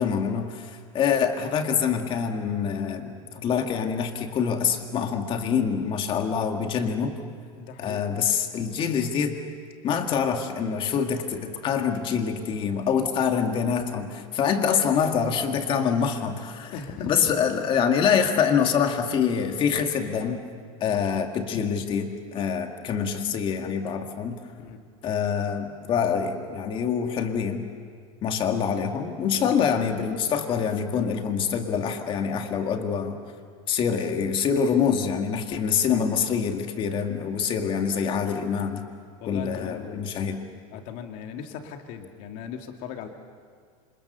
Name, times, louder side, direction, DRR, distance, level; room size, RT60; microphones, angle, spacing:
voice 1, 0.0-7.2 7.8-9.4 9.8-16.7 17.0-20.4 20.8-24.4 25.0-27.6 28.2-33.2 33.7-38.9 39.3-40.5, left 7 dB, 30° left, 4 dB, 2.0 m, -25 dB
voice 2, 7.5-8.1 16.7-17.3 24.6-24.8 29.4-29.8 39.2-40.0 40.7-43.1, left 7 dB, 45° left, 4 dB, 2.3 m, -38 dB
27.5 x 26.5 x 6.9 m, 2.1 s
supercardioid pair, 160°, 18 cm